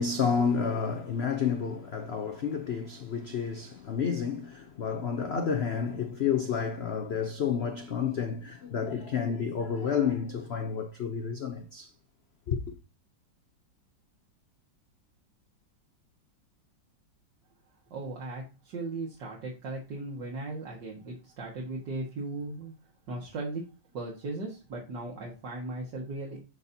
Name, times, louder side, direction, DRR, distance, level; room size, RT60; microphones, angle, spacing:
voice 1, 0.0-11.9 12.5-12.6, left 6 dB, 65° left, 0.6 m, -30 dB
voice 2, 17.9-22.7 23.1-23.6 23.9-26.4, right 2 dB, 65° right, 2.2 m, -37 dB
12.5 x 4.2 x 2.7 m
omnidirectional pair, 2.1 m